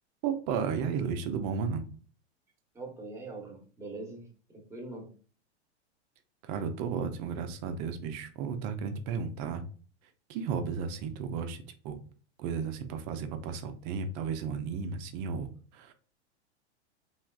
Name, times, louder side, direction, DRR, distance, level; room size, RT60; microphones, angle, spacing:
voice 1, 0.2-1.8 6.4-9.6 10.3-12.0 12.4-15.9, right 6 dB, 40° right, 8 dB, 0.5 m, -34 dB
voice 2, 2.7-5.1, right 2 dB, 10° right, 1 dB, 1.0 m, -43 dB
3.3 x 2.4 x 2.3 m, 0.41 s
hypercardioid pair, 115°, 34 cm